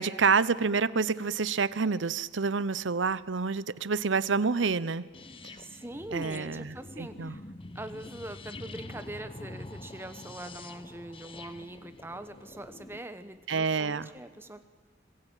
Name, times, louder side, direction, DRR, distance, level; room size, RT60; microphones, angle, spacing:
voice 1, 0.0-5.1 6.1-7.4 13.5-14.1, right 5 dB, 70° right, 17 dB, 0.8 m, -28 dB
sound 1, 5.1-13.0, left 2 dB, 25° left, 0.9 m, -46 dB
voice 2, 5.6-7.4 7.7-14.6, right 1 dB, 10° right, 10 dB, 1.1 m, -42 dB
26.0 x 21.5 x 9.1 m, 1.4 s
head